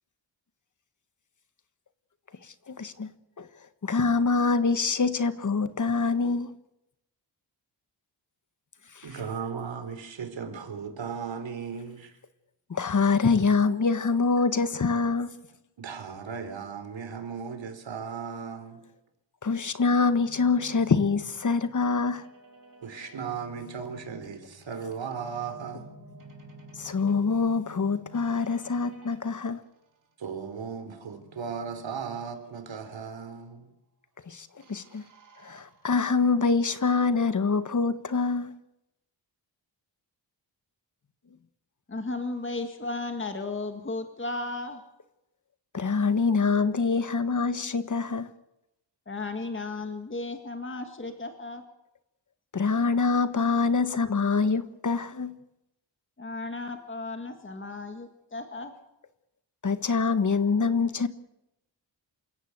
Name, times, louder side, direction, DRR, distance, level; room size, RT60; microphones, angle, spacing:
voice 1, 2.4-3.5 3.8-6.6 8.9-9.2 12.7-15.3 19.4-22.3 26.8-29.6 34.2-35.1 35.4-38.5 45.7-48.3 52.5-55.4 59.6-61.1, left 4 dB, 40° left, 1.4 m, -25 dB
voice 2, 9.0-12.2 15.8-18.8 22.8-25.9 30.2-33.7, right 6 dB, 80° right, 3.9 m, -36 dB
sound 1, 20.1-29.2 31.1-33.1 34.6-36.5, left 1 dB, 45° right, 4.7 m, -52 dB
voice 3, 41.9-44.8 49.1-51.6 56.2-58.7, left 3 dB, 25° left, 1.9 m, -35 dB
28.0 x 16.0 x 8.1 m
wide cardioid pair, 165°, 44 cm